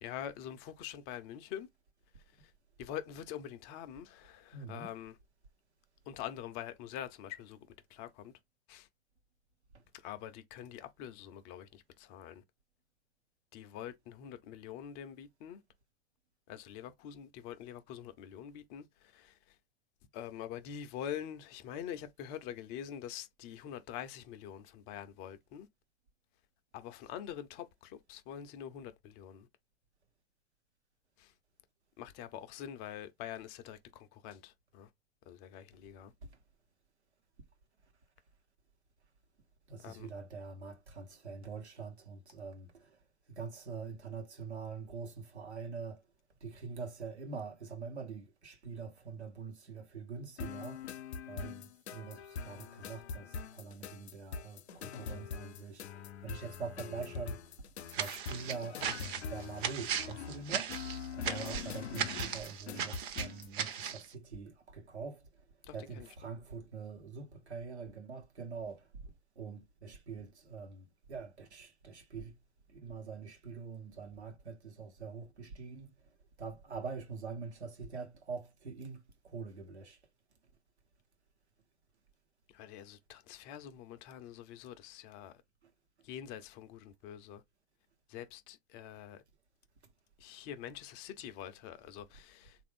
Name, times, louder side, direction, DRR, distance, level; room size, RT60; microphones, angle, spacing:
voice 1, 0.0-1.7 2.4-2.5 2.8-5.2 6.1-7.6 7.9-8.3 8.7-8.9 9.9-12.4 13.5-15.6 16.5-19.6 20.1-25.7 26.7-29.5 31.2-31.3 32.0-34.9 35.3-36.1 39.8-40.1 61.2-61.6 65.6-66.1 82.5-85.3 86.0-87.4 88.1-89.2 90.2-92.6, left 10 dB, 30° left, 0.5 m, -45 dB
voice 2, 4.5-4.9 9.7-9.8 36.2-36.3 39.7-43.0 43.3-46.0 46.4-50.8 51.3-57.4 57.9-58.8 59.3-60.8 61.1-65.2 65.7-72.4 72.7-75.9 76.4-80.0, right 5 dB, 85° right, 1.1 m, -44 dB
sound 1, 50.4-63.5, left 6 dB, 75° left, 0.6 m, -43 dB
sound 2, 57.9-64.1, right 8 dB, 50° right, 0.8 m, -37 dB
3.5 x 2.5 x 3.4 m
hypercardioid pair, 110°, 33 cm